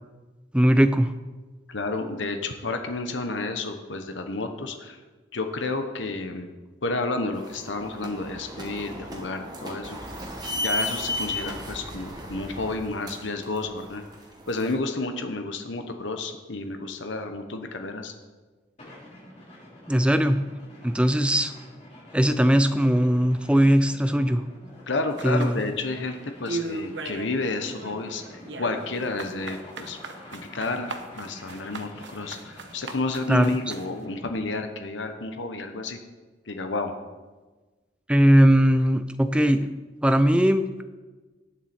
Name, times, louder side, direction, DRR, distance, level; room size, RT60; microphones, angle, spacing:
voice 1, 0.5-1.1 19.9-20.4 20.8-21.5 22.1-24.4 25.2-25.6 33.3-33.6 38.1-39.7 40.0-40.8, equal, 5° right, 10 dB, 0.5 m, -19 dB
voice 2, 1.7-5.0 5.3-6.5 6.8-10.0 10.5-14.0 14.5-18.1 24.9-30.0 30.3-36.0 36.5-36.9, left 3 dB, 75° left, 6 dB, 1.1 m, -31 dB
sound 1, 7.3-14.7, left 1 dB, 20° right, 1.6 m, -35 dB
sound 2, 18.8-34.2, left 1 dB, 35° left, 3.1 m, -48 dB
sound 3, 25.2-26.1 26.4-27.3 27.6-33.9, right 3 dB, 65° right, 1.0 m, -37 dB
18.5 x 7.5 x 4.4 m, 1.3 s
head